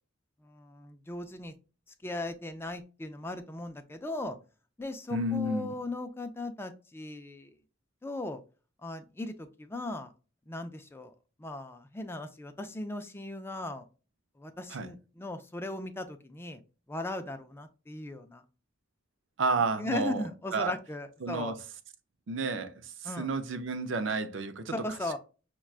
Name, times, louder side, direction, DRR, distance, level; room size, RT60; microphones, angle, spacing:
voice 1, 0.4-1.5 2.0-4.4 4.8-7.6 8.0-8.4 8.8-10.1 10.5-11.1 11.4-13.9 14.4-16.6 16.9-18.4 19.8-21.5 23.0-23.3 24.7-25.2, left 2 dB, 15° left, 0.3 m, -38 dB
voice 2, 5.1-5.7 14.7-14.9 19.4-20.2 20.5-20.7 21.2-21.6 22.3-24.7, right 3 dB, 75° right, 0.5 m, -31 dB
5.9 x 2.2 x 2.3 m
head